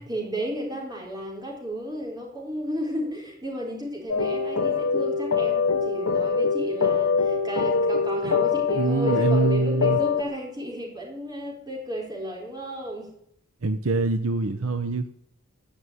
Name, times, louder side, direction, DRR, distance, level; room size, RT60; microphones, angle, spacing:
voice 1, 0.1-13.1, right 1 dB, 20° right, 4.7 m, -33 dB
sound 1, 4.1-10.2, left 5 dB, 75° left, 1.0 m, -24 dB
voice 2, 8.8-10.0 13.6-15.1, right 3 dB, 70° right, 0.9 m, -24 dB
15.5 x 7.2 x 9.8 m
head